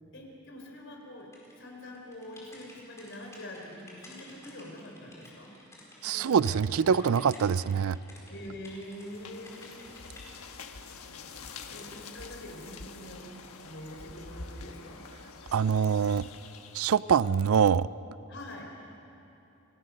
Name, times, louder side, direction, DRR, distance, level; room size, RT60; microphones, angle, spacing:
voice 1, 0.1-5.5 6.0-7.1 8.3-9.8 11.7-13.3 13.6-15.0 18.3-18.7, left 1 dB, 55° left, 0 dB, 4.4 m, -44 dB
sound 1, 1.3-6.6 6.9-9.1 9.4-10.3, left 1 dB, 15° left, 4.6 m, -53 dB
voice 2, 6.0-8.0 15.5-16.3 16.7-17.9, right 7 dB, 75° right, 18 dB, 0.4 m, -24 dB
sound 2, 8.8-17.3, left 4 dB, 90° left, 1.3 m, -46 dB
29.5 x 17.5 x 6.6 m, 2.9 s
head